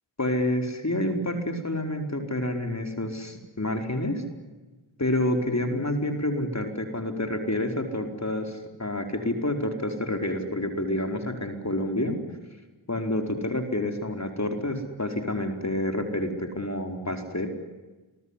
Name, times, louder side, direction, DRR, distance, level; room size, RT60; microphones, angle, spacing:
voice 1, 0.2-4.1 5.0-12.2 12.9-17.5, left 1 dB, 35° left, 5 dB, 4.7 m, -28 dB
27.5 x 21.5 x 10.0 m, 1.2 s
cardioid pair, 45°, 47 cm